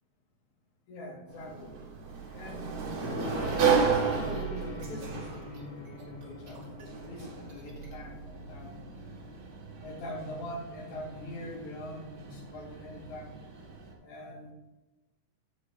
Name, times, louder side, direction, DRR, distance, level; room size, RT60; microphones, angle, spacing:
voice 1, 0.9-1.8 2.3-2.7 3.5-8.8 9.8-13.4 14.0-14.5, left 1 dB, 75° left, 1 dB, 3.2 m, -43 dB
Sliding door, 1.3-13.9, right 6 dB, 70° right, 3.0 m, -34 dB
sound 1, 2.9-4.4 4.7-5.1 5.3-7.9, right 2 dB, 50° right, 3.3 m, -52 dB
Gong, 3.0-10.5, left 3 dB, 25° left, 0.9 m, -44 dB
16.0 x 5.6 x 3.4 m, 1.1 s
omnidirectional pair, 3.4 m